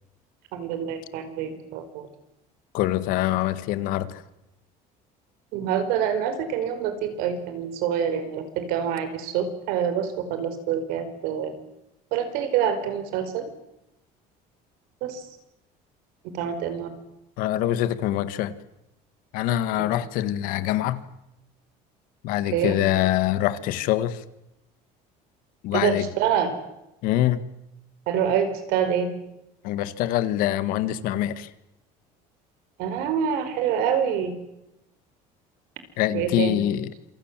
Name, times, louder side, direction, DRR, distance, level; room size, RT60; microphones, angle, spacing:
voice 1, 0.5-2.0 5.5-11.5 12.1-13.4 15.0-15.2 16.3-16.9 22.5-22.7 25.7-26.5 28.1-29.1 32.8-34.3 36.1-36.5, right 8 dB, 75° right, 9 dB, 5.0 m, -26 dB
voice 2, 2.7-4.2 17.4-18.5 19.3-21.0 22.2-24.2 25.6-26.1 27.0-27.4 29.6-31.5 36.0-36.9, left 13 dB, 65° left, 14 dB, 1.8 m, -24 dB
27.5 x 25.0 x 7.6 m, 0.87 s
cardioid pair, 180°, 16 cm